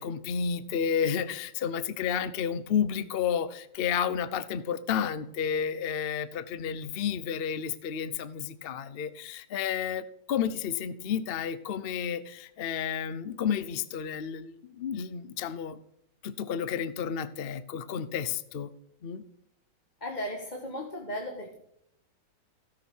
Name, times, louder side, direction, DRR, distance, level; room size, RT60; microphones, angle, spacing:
voice 1, 0.0-15.8 16.2-18.7 19.0-19.2, left 8 dB, 90° left, 14 dB, 0.5 m, -31 dB
voice 2, 20.0-21.5, left 1 dB, 25° left, 0 dB, 1.5 m, -36 dB
16.5 x 6.1 x 6.3 m, 0.76 s
omnidirectional pair, 2.0 m